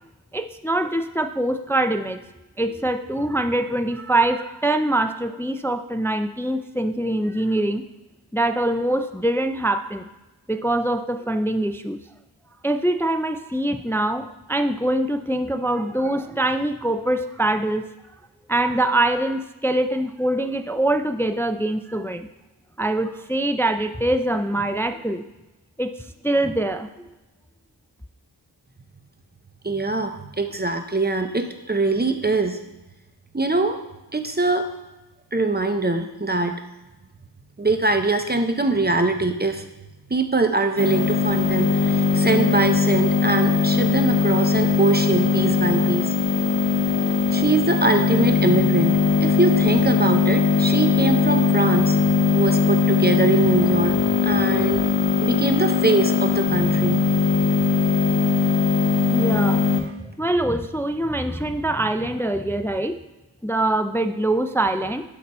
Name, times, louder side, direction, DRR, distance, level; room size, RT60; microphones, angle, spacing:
voice 1, 0.3-2.2 2.6-7.8 8.3-10.1 10.5-12.0 12.6-17.9 18.5-22.3 22.8-25.2 25.8-26.0 26.2-26.9 59.1-59.7 60.2-63.0 63.4-65.0, right 1 dB, 5° left, 9 dB, 0.3 m, -23 dB
voice 2, 29.6-32.6 33.3-33.8 34.1-34.7 35.3-36.6 37.6-39.6 40.1-46.1 47.3-52.0 52.3-54.9 55.2-57.0, right 3 dB, 25° right, 6 dB, 0.7 m, -23 dB
sound 1, 40.8-59.8, left 4 dB, 75° left, 0.9 m, -20 dB
11.5 x 3.9 x 4.3 m, 1.0 s
wide cardioid pair, 40°, 43 cm